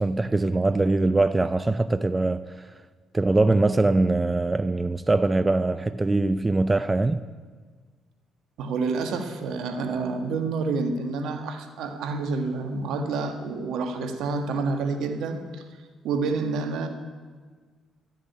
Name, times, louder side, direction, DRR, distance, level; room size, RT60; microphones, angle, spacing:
voice 1, 0.0-2.7 3.1-7.2, right 2 dB, 20° right, 0.5 m, -22 dB
voice 2, 8.6-15.6 16.0-16.9, right 4 dB, 75° right, 1.5 m, -28 dB
12.5 x 7.5 x 9.4 m
supercardioid pair, 65°, 0 cm